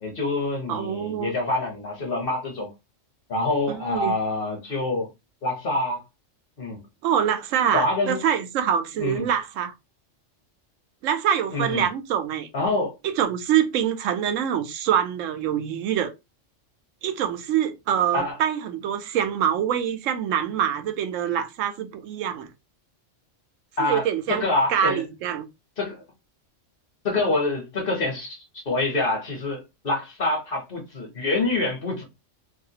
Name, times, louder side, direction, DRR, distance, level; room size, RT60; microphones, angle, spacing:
voice 1, 0.0-2.7 3.3-5.1 5.4-6.0 6.6-6.8 7.7-8.2 9.0-9.3 11.5-11.9 12.5-12.9 18.1-18.4 23.8-25.0 25.8-26.0 27.0-32.0, left 2 dB, 50° left, 1.1 m, -26 dB
voice 2, 0.7-1.3 3.7-4.1 7.0-9.7 11.0-12.5 13.0-16.1 17.0-22.5 23.8-24.4 24.7-25.5, right 9 dB, 85° right, 0.9 m, -25 dB
2.7 x 2.3 x 2.8 m
omnidirectional pair, 1.3 m